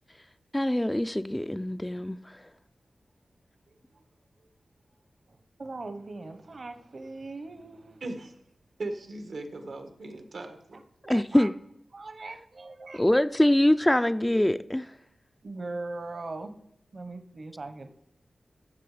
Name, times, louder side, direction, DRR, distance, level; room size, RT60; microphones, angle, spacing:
voice 1, 0.5-2.4 11.1-11.5 12.9-14.9, left 1 dB, 10° left, 0.3 m, -24 dB
voice 2, 5.3-8.0 10.7-11.5 11.9-13.0 15.4-16.5 16.9-17.9, right 3 dB, 50° right, 1.0 m, -40 dB
voice 3, 8.0-8.3 8.8-10.8, right 2 dB, 80° right, 1.5 m, -38 dB
14.5 x 6.7 x 5.0 m
wide cardioid pair, 95°, 0 cm